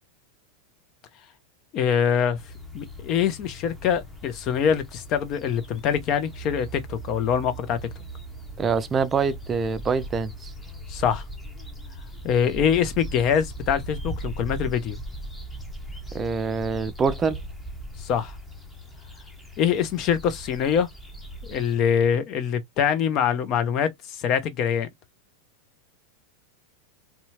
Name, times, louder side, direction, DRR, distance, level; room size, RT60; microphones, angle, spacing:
voice 1, 1.7-2.4 2.7-7.8 10.9-11.2 12.2-15.0 18.0-18.4 19.6-20.9 21.4-24.9, left 8 dB, 45° left, 0.7 m, -24 dB
sound 1, 2.4-21.7, right 1 dB, 5° left, 0.8 m, -39 dB
voice 2, 8.6-10.5 16.1-17.4, right 5 dB, 25° right, 0.4 m, -25 dB
2.7 x 2.3 x 2.8 m
hypercardioid pair, 100°, 0 cm